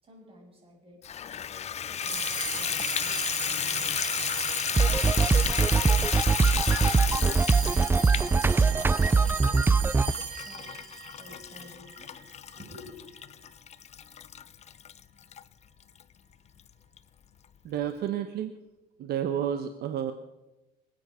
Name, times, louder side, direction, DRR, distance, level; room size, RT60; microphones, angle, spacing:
voice 1, 0.0-4.0 4.7-7.3 7.6-9.6 10.2-12.2 12.6-13.0, equal, 35° right, 0 dB, 7.0 m, -51 dB
Water tap faucet / Bathtub (filling or washing), 1.0-15.4 16.0-16.1 16.6-16.7 17.0-17.1, left 9 dB, 40° left, 0.6 m, -33 dB
sound 1, 2.0-12.7, right 10 dB, 85° right, 2.1 m, -37 dB
sound 2, 4.8-10.1, right 4 dB, 15° right, 0.4 m, -22 dB
voice 2, 17.6-18.6 19.0-20.1, right 9 dB, 70° right, 8 dB, 1.0 m, -30 dB
25.5 x 9.1 x 5.7 m, 1.0 s
cardioid pair, 110°, 17 cm